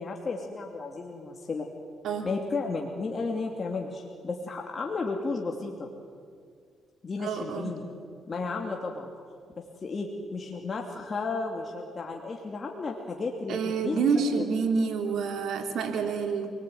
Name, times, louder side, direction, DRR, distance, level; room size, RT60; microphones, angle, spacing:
voice 1, 0.0-1.7 2.2-5.9 7.0-7.8 8.3-9.1 9.6-14.0 14.3-14.4, left 3 dB, 40° left, 1 dB, 2.9 m, -33 dB
voice 2, 7.2-7.7 13.5-16.5, right 5 dB, 75° right, 4 dB, 3.6 m, -28 dB
28.0 x 20.5 x 9.4 m, 2.2 s
cardioid pair, 90°, 0 cm